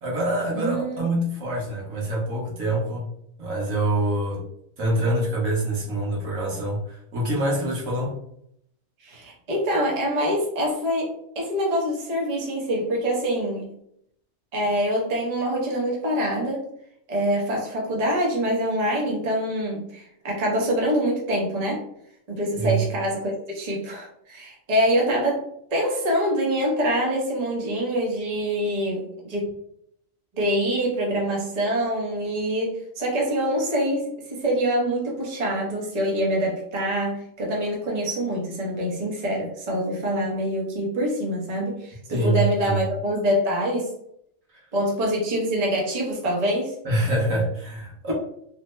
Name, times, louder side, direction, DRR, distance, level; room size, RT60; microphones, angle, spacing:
voice 1, 0.0-3.1 3.4-4.4 4.8-8.1 22.5-22.8 42.1-42.8 46.8-48.1, right 1 dB, 80° right, -3 dB, 1.4 m, -25 dB
voice 2, 0.5-1.0 9.0-13.7 14.5-16.6 17.1-21.8 22.3-25.4 25.7-29.5 30.3-43.9 44.7-46.8, equal, 35° right, -3 dB, 0.8 m, -25 dB
3.3 x 2.1 x 3.1 m, 0.72 s
omnidirectional pair, 1.3 m